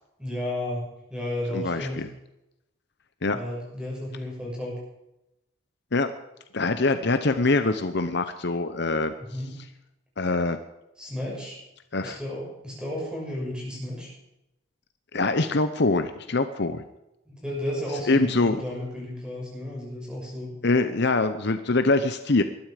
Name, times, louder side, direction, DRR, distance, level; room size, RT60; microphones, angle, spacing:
voice 1, 0.2-2.0 3.3-4.8 9.2-9.5 11.0-11.6 12.0-14.1 17.3-20.5, left 1 dB, 5° right, -3 dB, 6.4 m, -33 dB
voice 2, 1.5-2.1 3.2-3.4 5.9-6.1 6.5-9.1 10.2-10.6 11.9-12.2 15.1-16.8 18.1-18.6 20.6-22.4, left 3 dB, 55° left, 9 dB, 0.8 m, -24 dB
20.0 x 12.5 x 5.1 m, 0.89 s
head